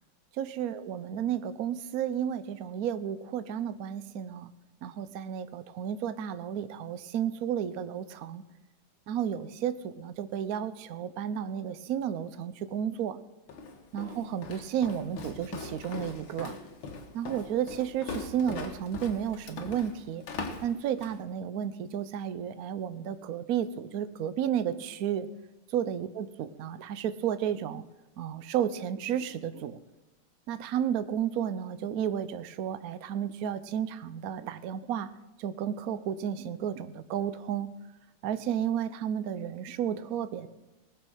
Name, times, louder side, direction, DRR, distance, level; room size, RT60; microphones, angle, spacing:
voice 1, 0.4-4.5 4.8-8.4 9.1-13.2 13.9-16.6 17.1-20.2 20.6-25.3 25.7-27.8 28.2-29.8 30.5-35.1 35.4-37.7 38.2-40.5, right 9 dB, 65° right, 13 dB, 0.9 m, -32 dB
Walk footsteps, 13.5-21.2, left 4 dB, 65° left, 2.2 m, -41 dB
19.0 x 6.7 x 6.3 m, 1.1 s
omnidirectional pair, 2.4 m